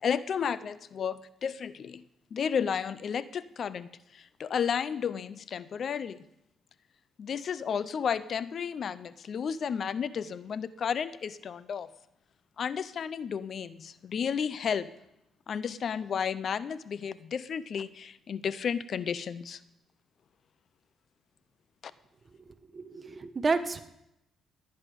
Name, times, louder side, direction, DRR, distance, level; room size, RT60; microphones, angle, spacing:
voice 1, 0.0-2.0 2.3-6.2 7.2-11.9 12.6-14.9 15.5-19.6, left 7 dB, 55° left, 16 dB, 0.6 m, -32 dB
voice 2, 22.7-23.8, right 3 dB, 30° right, 10 dB, 1.2 m, -30 dB
18.0 x 10.5 x 5.3 m, 0.84 s
cardioid pair, 90°, 0 cm